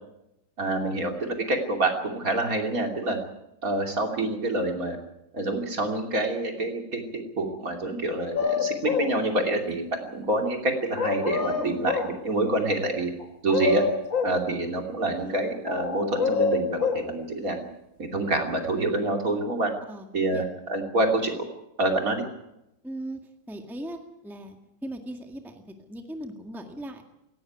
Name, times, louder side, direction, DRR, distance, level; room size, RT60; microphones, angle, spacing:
voice 1, 0.6-3.2 3.6-5.0 5.3-13.1 13.4-13.8 14.2-17.6 18.0-19.7 20.1-21.4 21.8-22.2, right 2 dB, 45° right, 3 dB, 3.3 m, -27 dB
sound 1, 8.3-9.2 11.0-12.2 13.2-14.4 15.7-17.1, left 5 dB, 80° left, 2.8 m, -26 dB
voice 2, 11.5-11.9 19.9-20.1 20.3-20.4 22.8-23.2 23.5-24.6 24.8-27.0, right 1 dB, ahead, 4 dB, 1.7 m, -38 dB
18.0 x 17.0 x 9.4 m, 0.88 s
omnidirectional pair, 2.0 m